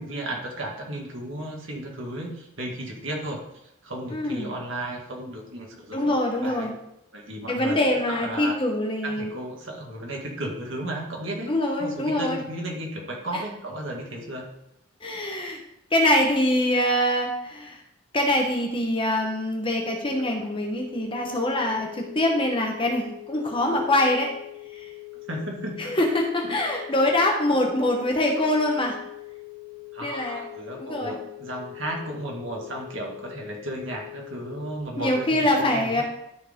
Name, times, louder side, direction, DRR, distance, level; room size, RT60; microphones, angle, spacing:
voice 1, 0.0-3.4 3.8-6.7 7.1-8.5 9.0-11.5 11.8-14.5 25.3-26.0 26.5-26.6 29.9-36.0, right 1 dB, 65° right, -1 dB, 2.1 m, -34 dB
voice 2, 4.1-4.5 5.9-6.7 7.5-9.3 11.5-12.4 13.3-13.4 15.0-15.6 15.9-17.8 18.1-24.3 24.7-24.9 25.8-29.0 30.0-30.4 30.8-31.1 35.0-36.0, left 1 dB, 25° left, 1 dB, 1.1 m, -24 dB
sound 1, 19.8-34.8, left 24 dB, 45° left, 1.9 m, -42 dB
13.0 x 4.8 x 3.7 m, 0.82 s
head